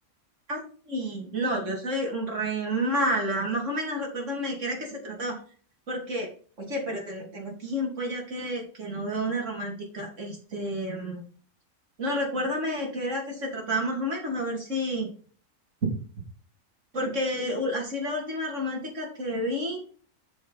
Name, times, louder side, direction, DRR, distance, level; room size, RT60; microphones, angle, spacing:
voice 1, 0.9-5.4 5.9-6.3 6.6-11.2 12.0-15.1 15.8-15.9 16.9-19.8, equal, 55° right, 0 dB, 3.2 m, -30 dB
7.5 x 7.0 x 4.1 m, 0.43 s
omnidirectional pair, 1.6 m